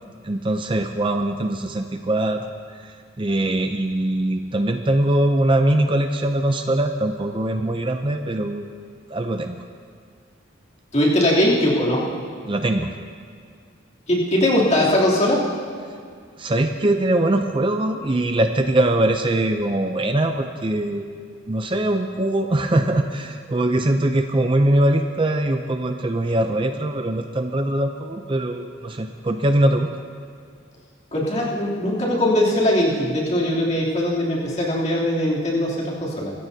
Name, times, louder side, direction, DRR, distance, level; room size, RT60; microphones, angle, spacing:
voice 1, 0.2-2.5 2.7-8.7 9.1-9.6 12.5-12.9 16.4-21.0 21.5-29.9, right 1 dB, 25° right, 6 dB, 0.5 m, -22 dB
voice 2, 10.9-12.0 14.1-15.4 31.1-36.3, left 1 dB, 35° left, -6 dB, 3.0 m, -20 dB
24.0 x 15.0 x 2.8 m, 2.1 s
head